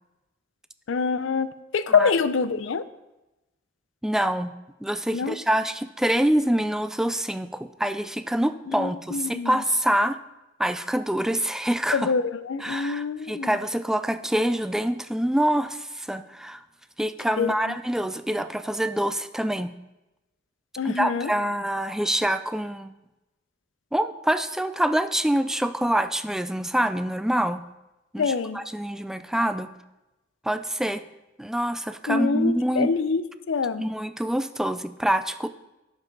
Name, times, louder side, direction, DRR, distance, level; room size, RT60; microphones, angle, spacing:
voice 1, 0.9-1.5 1.7-2.8 5.1-5.4 8.7-9.6 11.9-13.5 17.4-17.5 20.8-21.3 28.2-28.6 32.1-33.2 33.5-33.9, left 5 dB, 75° left, 14 dB, 0.5 m, -25 dB
voice 2, 4.0-4.5 4.8-10.2 10.6-12.1 12.6-16.6 17.0-19.7 20.8-22.9 23.9-27.7 28.1-29.7 30.4-31.0 31.4-32.9 33.8-35.5, right 1 dB, 5° right, 11 dB, 0.3 m, -26 dB
12.0 x 5.5 x 3.9 m, 0.99 s
head